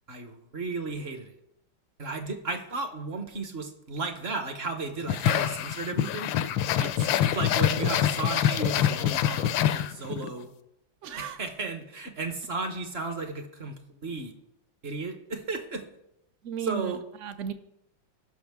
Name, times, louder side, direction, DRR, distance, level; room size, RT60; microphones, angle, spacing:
voice 1, 0.1-1.3 2.0-6.3 7.3-10.5 11.2-14.3 14.8-15.8 16.6-17.0, right 3 dB, 40° right, 6 dB, 1.0 m, -34 dB
sound 1, 5.1-10.3, left 11 dB, 80° left, 1.3 m, -25 dB
voice 2, 6.8-7.1 11.0-11.4 16.4-17.5, right 7 dB, 65° right, 10 dB, 0.7 m, -36 dB
18.5 x 6.1 x 3.5 m, 0.80 s
omnidirectional pair, 2.1 m